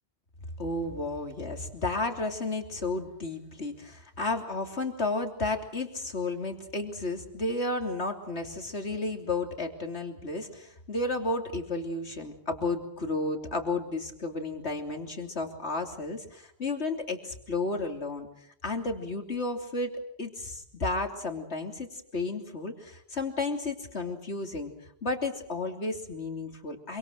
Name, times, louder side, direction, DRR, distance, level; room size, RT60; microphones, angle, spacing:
voice 1, 0.6-18.3 18.6-19.9 20.2-24.7 25.0-27.0, left 2 dB, 85° left, 5 dB, 3.4 m, -32 dB
27.0 x 25.0 x 6.5 m, 0.68 s
omnidirectional pair, 1.1 m